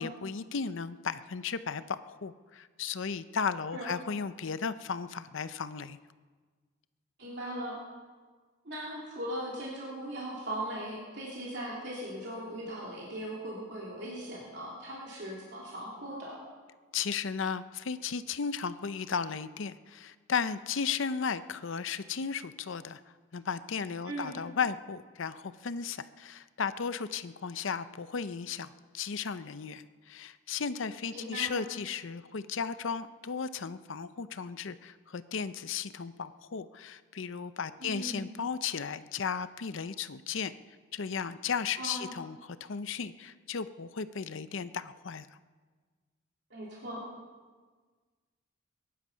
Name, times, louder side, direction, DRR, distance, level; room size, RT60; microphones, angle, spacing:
voice 1, 0.0-6.0 16.9-23.0 23.3-40.5 40.9-45.3, left 6 dB, 70° left, 13 dB, 0.6 m, -35 dB
voice 2, 7.2-7.8 8.6-16.4 24.0-24.4 31.1-31.7 37.8-38.3 41.8-42.1 46.5-47.0, right 1 dB, 55° right, -5 dB, 3.3 m, -39 dB
22.5 x 11.0 x 5.6 m, 1.5 s
head